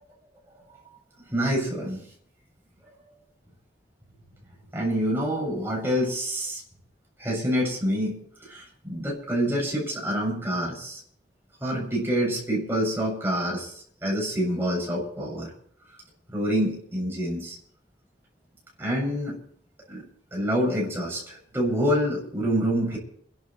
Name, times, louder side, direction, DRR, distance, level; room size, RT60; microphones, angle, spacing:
voice 1, 1.3-2.0 4.7-6.6 7.2-11.0 11.6-15.5 16.3-17.6 18.8-19.3 19.9-20.0 20.3-23.0, equal, 15° right, -3 dB, 7.4 m, -27 dB
30.0 x 12.0 x 3.4 m, 0.64 s
head